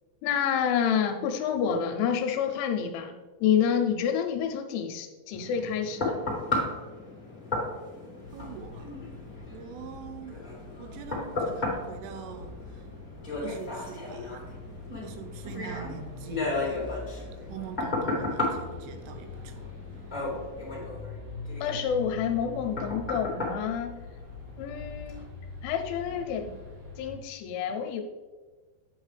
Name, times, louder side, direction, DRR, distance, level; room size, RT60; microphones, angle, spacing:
voice 1, 0.2-3.2 3.4-6.2 21.6-24.0 24.6-25.2 25.6-26.5 27.0-28.0, left 8 dB, 80° left, 5 dB, 2.9 m, -28 dB
sound 1, 5.3-24.6 25.1-25.2, left 2 dB, 25° left, 0.9 m, -34 dB
sound 2, 8.2-27.2, left 3 dB, 50° right, 2.2 m, -44 dB
voice 2, 8.3-8.9 9.5-10.4 10.8-12.8 13.4-14.4 15.0-16.9 17.5-19.7, right 7 dB, 85° right, 6 dB, 3.3 m, -43 dB
8.5 x 8.0 x 3.3 m, 1.3 s
omnidirectional pair, 5.7 m